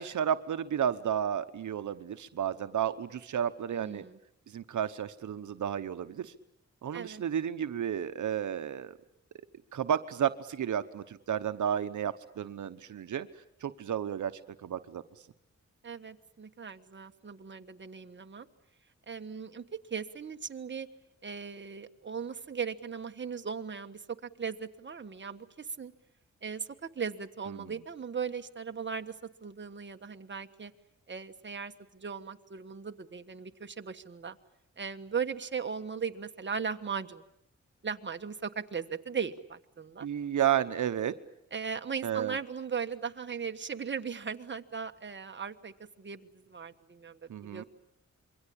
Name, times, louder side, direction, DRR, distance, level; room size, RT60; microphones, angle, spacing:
voice 1, 0.0-4.0 4.5-6.3 6.8-8.9 9.7-13.3 13.6-14.3 14.6-15.0 27.5-27.7 40.0-41.1 42.0-42.4 47.3-47.6, right 9 dB, 85° right, 11 dB, 1.0 m, -32 dB
voice 2, 3.7-4.2 6.9-7.2 15.8-18.5 19.1-19.6 19.9-20.9 21.2-25.9 26.4-29.1 29.4-30.7 31.1-34.4 34.8-37.2 37.8-40.1 41.5-47.6, right 6 dB, 40° right, 7 dB, 1.5 m, -38 dB
27.0 x 23.0 x 8.7 m, 0.77 s
wide cardioid pair, 100°, 29 cm